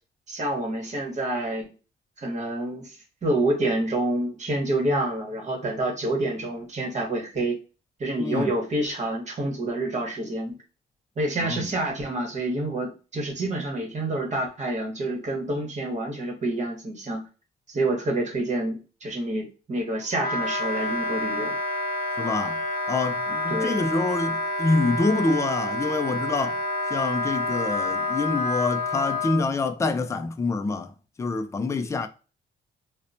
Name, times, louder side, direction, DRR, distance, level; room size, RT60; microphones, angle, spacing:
voice 1, 0.3-1.7 2.2-7.6 8.0-10.6 11.2-17.3 17.7-21.6 23.5-23.8, right 1 dB, 35° right, 1.1 m, -28 dB
voice 2, 8.2-8.5 11.4-11.7 22.2-22.6 22.9-26.6 26.9-30.9 31.2-32.1, left 3 dB, 15° left, 0.3 m, -26 dB
Wind instrument woodwind instrument, 20.2-29.4, left 2 dB, 45° left, 0.7 m, -28 dB
2.9 x 2.1 x 2.5 m
cardioid pair, 90°, 20 cm